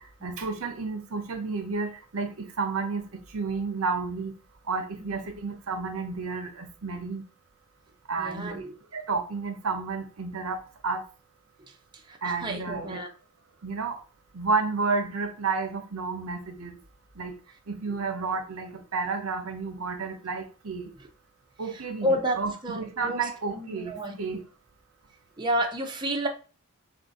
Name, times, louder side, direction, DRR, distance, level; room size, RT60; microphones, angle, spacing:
voice 1, 0.2-4.4 4.7-7.2 8.1-8.6 8.9-11.0 12.2-13.0 13.6-14.0 14.3-16.8 17.2-17.4 17.7-20.9 21.6-24.4, right 4 dB, 70° right, 6 dB, 0.8 m, -31 dB
voice 2, 8.2-8.7 12.1-13.1 22.0-23.3 23.5-24.2 25.4-26.3, equal, 20° right, 1 dB, 0.6 m, -30 dB
4.2 x 2.6 x 4.1 m, 0.35 s
head